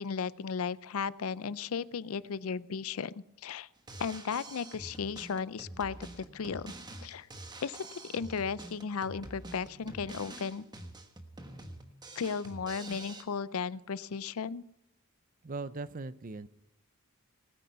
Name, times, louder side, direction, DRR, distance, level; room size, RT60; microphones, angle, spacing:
voice 1, 0.0-3.1 3.4-3.7 4.0-6.7 7.0-7.3 7.6-10.6 12.2-14.6, left 6 dB, 80° left, 19 dB, 0.5 m, -35 dB
Drum kit, 3.8-13.2, right 2 dB, 20° right, 1.3 m, -47 dB
voice 2, 15.4-16.5, right 3 dB, 40° right, 16 dB, 0.6 m, -39 dB
19.0 x 9.2 x 5.7 m, 0.80 s
head